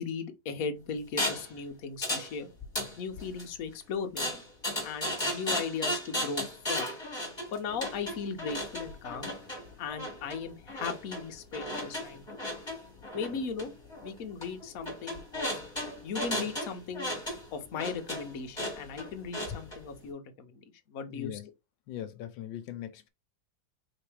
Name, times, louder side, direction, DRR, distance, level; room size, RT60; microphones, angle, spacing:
voice 1, 0.0-2.5 3.0-4.4 4.8-6.9 7.5-9.3 9.8-12.5 13.1-13.7 14.0-15.5 16.0-17.1 17.5-21.4, left 5 dB, 55° left, 1.1 m, -37 dB
sound 1, 1.2-1.5 2.0-2.3 2.6-3.4 4.2-19.8, left 1 dB, 15° left, 2.1 m, -35 dB
voice 2, 21.1-21.5 21.9-23.1, left 11 dB, 80° left, 1.4 m, -40 dB
4.2 x 3.4 x 3.2 m
omnidirectional pair, 2.1 m